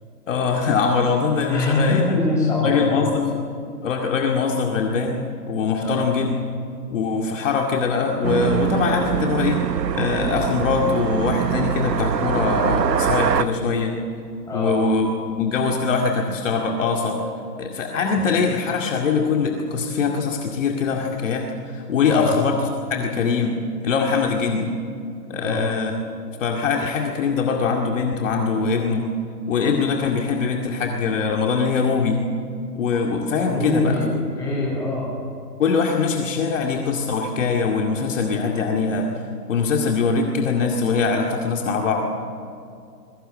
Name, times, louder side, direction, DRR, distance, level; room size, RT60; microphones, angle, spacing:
voice 1, 0.3-2.0 2.6-3.3 3.8-6.3 6.9-9.6 9.9-14.0 14.5-17.2 17.6-23.6 23.8-24.7 25.3-25.9 26.4-29.1 29.5-32.2 32.8-34.0 35.6-39.1 39.5-42.1, left 5 dB, 50° left, 1 dB, 2.3 m, -22 dB
voice 2, 1.4-3.0 5.8-6.0 14.5-14.7 22.1-22.3 25.4-25.6 33.3-35.1, left 2 dB, 5° left, -5 dB, 7.8 m, -23 dB
sound 1, 8.2-13.4, right 8 dB, 90° right, 1.1 m, -23 dB
21.5 x 16.0 x 8.8 m, 2.4 s
hypercardioid pair, 150°, 49 cm